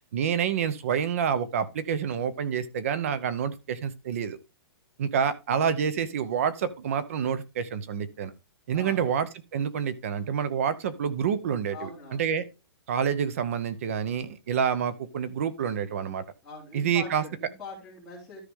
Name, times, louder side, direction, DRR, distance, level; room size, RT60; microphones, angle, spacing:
voice 1, 0.1-4.4 5.0-8.3 8.7-9.3 9.5-12.4 12.9-16.2 16.7-17.2, right 7 dB, 35° right, 0.8 m, -28 dB
voice 2, 8.7-9.1 11.7-12.2 16.4-18.4, left 3 dB, 5° left, 3.7 m, -42 dB
13.0 x 4.9 x 3.7 m
hypercardioid pair, 180°, 13 cm